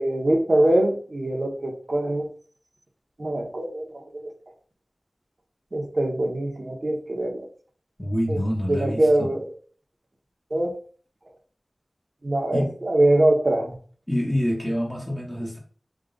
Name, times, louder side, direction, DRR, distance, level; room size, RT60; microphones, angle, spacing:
voice 1, 0.0-2.3 3.2-4.3 5.7-7.4 8.3-8.4 8.7-9.5 10.5-10.8 12.2-13.8, right 1 dB, 50° right, 1 dB, 1.0 m, -23 dB
voice 2, 8.0-9.3 12.5-12.7 14.1-15.6, equal, 15° left, -2 dB, 1.1 m, -26 dB
3.7 x 2.5 x 3.8 m, 0.43 s
wide cardioid pair, 50°, 0 cm